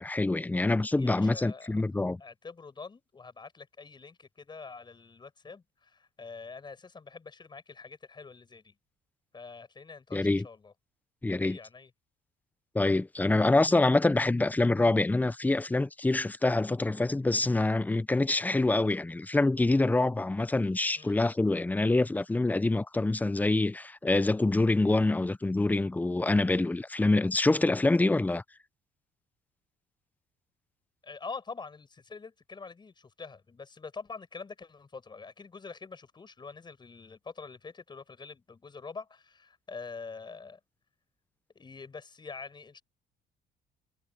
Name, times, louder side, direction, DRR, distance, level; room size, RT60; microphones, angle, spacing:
voice 1, 0.0-2.2 10.1-10.4 11.2-11.6 12.7-28.4, left 2 dB, 10° left, 0.6 m, -26 dB
voice 2, 0.9-1.8 2.2-8.7 9.3-10.7 11.3-11.9 21.0-21.1 31.0-40.6 41.5-42.8, left 4 dB, 25° left, 7.5 m, -45 dB
cardioid pair, 110°, 17 cm